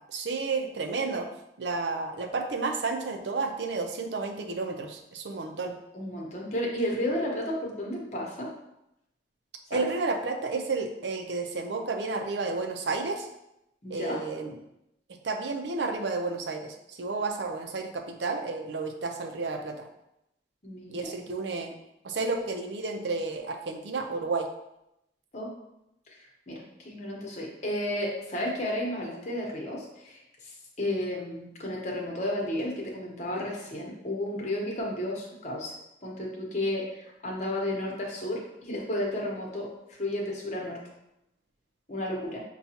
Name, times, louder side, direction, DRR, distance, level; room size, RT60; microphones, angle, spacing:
voice 1, 0.1-1.3 1.6-5.7 9.7-13.3 13.9-14.6 15.2-19.9 20.9-21.7 22.0-24.5, right 3 dB, 75° right, 4 dB, 0.6 m, -31 dB
voice 2, 5.9-8.5 9.7-9.9 13.8-14.2 20.6-21.1 25.3-25.5 26.1-26.2 26.5-35.7 36.0-39.7 40.0-40.8 41.9-42.4, left 1 dB, 40° left, -2 dB, 1.0 m, -32 dB
6.9 x 2.3 x 2.8 m, 0.85 s
head